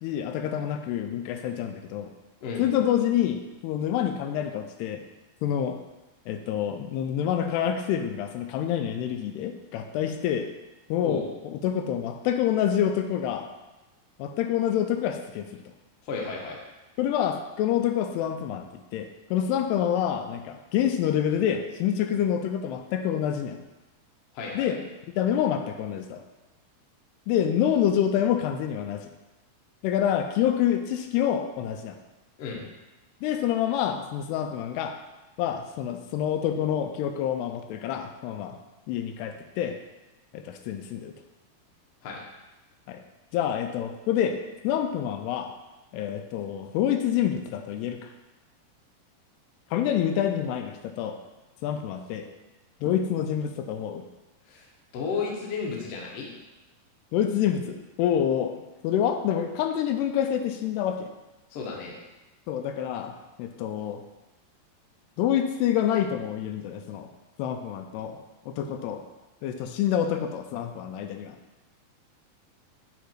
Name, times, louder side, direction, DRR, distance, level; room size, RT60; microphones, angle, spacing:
voice 1, 0.0-2.1 2.6-5.0 5.4-5.8 6.3-10.5 10.9-13.5 14.2-15.5 17.0-23.6 24.5-24.8 25.1-26.2 27.3-29.1 29.8-32.0 33.2-35.0 35.4-38.6 38.9-39.8 40.3-41.1 42.9-43.0 43.3-44.4 44.6-45.5 45.9-48.1 49.7-51.2 51.6-52.3 52.8-54.0 57.1-58.5 58.8-61.1 62.5-64.0 65.2-67.1 67.4-68.2 68.5-69.0 69.4-71.4, left 9 dB, 85° left, 6 dB, 2.6 m, -27 dB
voice 2, 16.0-16.6 24.3-24.7 32.4-32.6 42.0-42.2 54.5-54.6 54.9-56.3 61.5-61.9, left 4 dB, 65° left, -2 dB, 1.5 m, -33 dB
9.2 x 4.1 x 4.7 m, 1.1 s
omnidirectional pair, 4.7 m